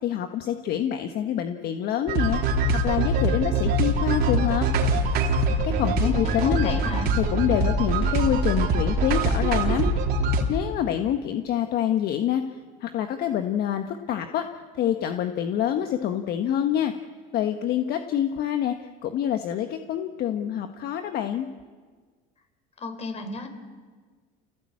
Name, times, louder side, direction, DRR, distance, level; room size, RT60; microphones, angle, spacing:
voice 1, 0.0-2.5 2.8-4.7 5.6-6.8 7.2-9.9 10.5-12.4 12.8-14.5 14.7-16.9 17.3-21.5, left 10 dB, 60° left, 7 dB, 1.3 m, -26 dB
sound 1, 2.1-10.4, right 2 dB, 60° right, 3.6 m, -23 dB
voice 2, 6.0-7.1 22.8-23.5, left 3 dB, 35° left, 8 dB, 4.0 m, -34 dB
27.5 x 17.0 x 8.6 m, 1.5 s
supercardioid pair, 95°, 18 cm